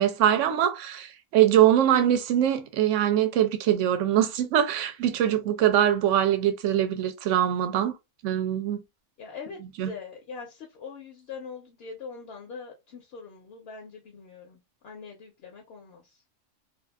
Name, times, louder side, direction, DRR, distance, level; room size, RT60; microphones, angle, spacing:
voice 1, 0.0-7.9 8.2-8.8 9.6-9.9, right 11 dB, 70° right, 0.8 m, -23 dB
voice 2, 9.2-9.6 9.9-16.0, left 5 dB, 60° left, 0.7 m, -42 dB
2.6 x 2.4 x 2.3 m
omnidirectional pair, 1.5 m